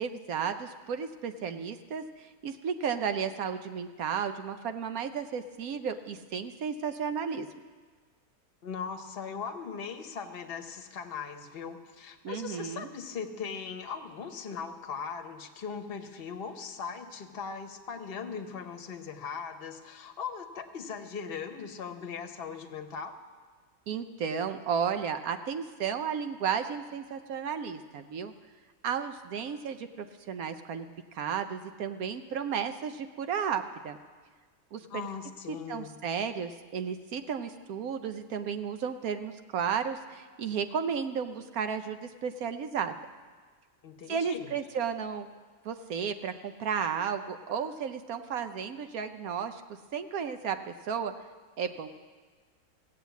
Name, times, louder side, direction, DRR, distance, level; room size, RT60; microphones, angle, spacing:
voice 1, 0.0-7.5 12.2-12.9 23.9-28.3 28.8-30.9 31.1-34.0 34.7-35.1 35.5-42.9 44.1-45.3 45.6-49.6 49.9-51.1 51.6-51.9, right 7 dB, 70° right, 9 dB, 1.0 m, -33 dB
voice 2, 8.6-23.2 34.9-36.0 43.8-44.5, left 6 dB, 40° left, 6 dB, 1.0 m, -39 dB
16.5 x 7.7 x 8.1 m, 1.5 s
omnidirectional pair, 1.7 m